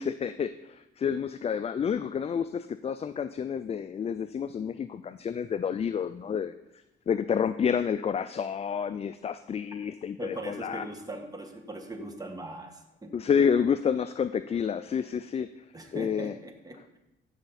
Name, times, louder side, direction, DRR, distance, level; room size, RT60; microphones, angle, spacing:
voice 1, 0.0-6.5 7.1-10.8 13.1-15.6 15.9-16.3, left 7 dB, 30° left, 12 dB, 0.4 m, -29 dB
voice 2, 10.2-13.1 15.7-16.8, right 1 dB, 20° right, 4 dB, 1.6 m, -40 dB
15.0 x 5.7 x 4.2 m, 0.95 s
cardioid pair, 90°, 20 cm